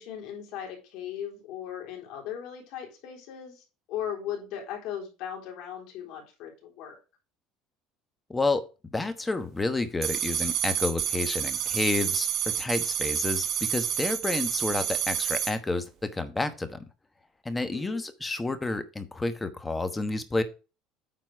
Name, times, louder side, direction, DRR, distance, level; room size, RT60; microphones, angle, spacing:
voice 1, 0.0-7.0 17.6-18.0, left 9 dB, 70° left, 0 dB, 3.7 m, -38 dB
voice 2, 8.3-8.6 8.9-16.8 17.4-20.4, left 3 dB, 15° left, 10 dB, 1.1 m, -30 dB
sound 1, 10.0-15.5, right 8 dB, 45° right, 1.5 m, -29 dB
9.3 x 4.1 x 4.8 m, 0.32 s
cardioid pair, 130°, 0 cm